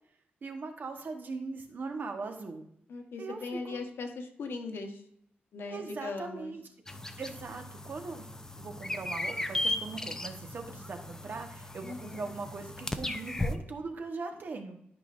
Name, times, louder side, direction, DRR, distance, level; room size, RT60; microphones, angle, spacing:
voice 1, 0.4-2.7 3.2-3.8 5.7-6.6 7.2-8.3 8.6-14.8, right 4 dB, 55° right, 4 dB, 1.3 m, -40 dB
voice 2, 2.9-5.0 5.5-6.5 11.8-12.3, left 4 dB, 85° left, 4 dB, 1.2 m, -39 dB
sound 1, 6.9-13.6, left 1 dB, 15° left, 0.6 m, -36 dB
12.0 x 5.5 x 2.6 m, 0.71 s
wide cardioid pair, 125°, 4 cm